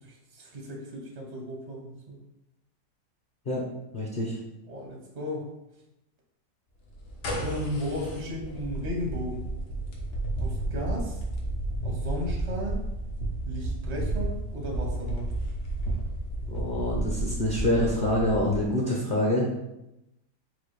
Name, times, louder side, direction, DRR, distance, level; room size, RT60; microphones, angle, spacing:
voice 1, 0.0-2.2 4.7-5.5 7.3-9.5 10.4-11.2 11.8-12.8 13.5-15.3, equal, 55° right, -1 dB, 0.4 m, -35 dB
voice 2, 3.9-4.4 16.5-19.5, left 1 dB, 50° left, -3 dB, 0.6 m, -26 dB
sound 1, 6.9-18.6, right 1 dB, 75° left, 1.5 m, -32 dB
4.1 x 2.5 x 4.6 m, 0.90 s
omnidirectional pair, 1.9 m